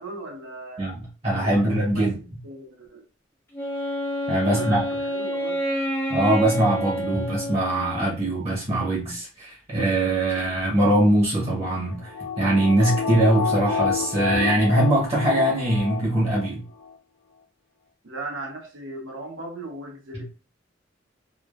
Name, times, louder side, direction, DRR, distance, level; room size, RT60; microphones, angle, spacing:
voice 1, 0.0-0.9 1.4-2.1 2.4-3.0 4.3-5.6 18.0-20.3, right 2 dB, 75° right, 1 dB, 0.9 m, -37 dB
voice 2, 0.8-2.2 4.3-4.8 6.1-16.6 20.1-20.2, right 1 dB, 30° right, -3 dB, 0.8 m, -22 dB
Wind instrument woodwind instrument, 3.5-8.3, equal, 10° left, 0.5 m, -28 dB
sound 1, 11.7-16.5 16.8-16.9, left 6 dB, 65° left, 0.4 m, -29 dB
3.0 x 2.2 x 2.3 m, 0.32 s
head